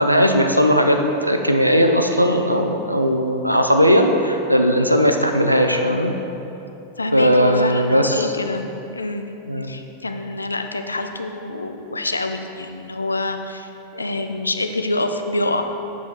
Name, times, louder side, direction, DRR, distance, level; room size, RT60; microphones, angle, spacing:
voice 1, 0.0-6.1 7.1-8.3 9.5-9.7, equal, 90° right, 5 dB, 0.4 m, -17 dB
voice 2, 7.0-9.4 9.7-15.6, left 2 dB, 80° left, 6 dB, 0.4 m, -26 dB
7.2 x 4.8 x 4.0 m, 2.9 s
figure-of-eight pair, 90°, 0 cm